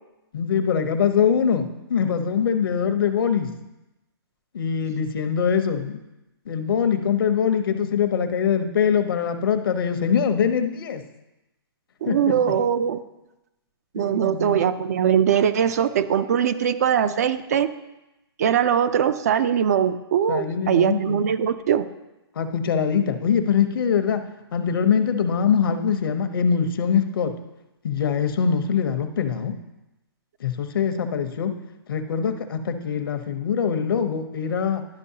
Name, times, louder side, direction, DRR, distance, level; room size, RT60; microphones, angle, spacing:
voice 1, 0.3-3.5 4.5-6.0 6.5-11.0 12.0-12.4 14.0-14.6 20.3-21.2 22.4-24.2 24.5-27.3 27.8-29.6 30.4-31.5 31.9-34.8, left 7 dB, 60° left, 8 dB, 0.8 m, -23 dB
voice 2, 12.0-13.0 13.9-17.7 18.4-21.9, right 8 dB, 40° right, 11 dB, 0.4 m, -21 dB
11.5 x 5.2 x 2.8 m, 0.96 s
hypercardioid pair, 160°, 14 cm